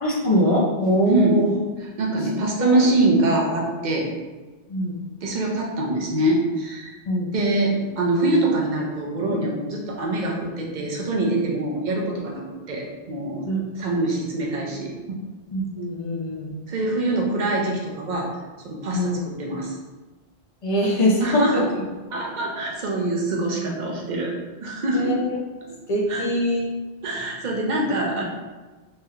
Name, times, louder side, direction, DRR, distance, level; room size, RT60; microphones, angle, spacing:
voice 1, 0.0-1.5 2.6-2.8 4.7-4.9 7.1-7.3 13.4-13.6 15.5-16.5 18.9-19.2 20.6-21.6 24.9-25.4 25.9-26.6, equal, 50° left, -2 dB, 0.4 m, -22 dB
voice 2, 1.1-1.4 1.8-4.1 5.2-6.9 7.3-12.4 12.7-13.4 13.8-15.2 16.7-18.3 18.6-19.8 21.2-21.6 22.1-24.3 24.6-25.2 26.1-26.3 27.0-28.2, right 2 dB, 50° right, -2 dB, 0.6 m, -24 dB
3.2 x 2.8 x 2.3 m, 1.2 s
omnidirectional pair, 1.2 m